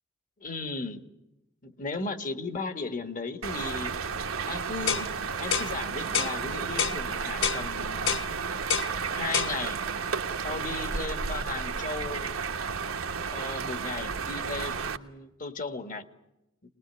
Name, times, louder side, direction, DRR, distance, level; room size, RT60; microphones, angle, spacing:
voice 1, 0.4-1.0 1.6-3.9 4.5-8.2 9.1-9.8 10.4-12.3 13.3-16.1, left 3 dB, 40° left, 9 dB, 1.7 m, -36 dB
sound 1, 3.4-15.0, right 5 dB, 75° right, 1.2 m, -32 dB
sound 2, 4.9-5.1 5.5-5.7 6.1-6.4 6.8-7.0 7.4-7.6 8.1-8.3 8.7-8.9 9.3-9.5, left 8 dB, 65° left, 1.0 m, -27 dB
24.5 x 20.0 x 9.8 m, 0.93 s
head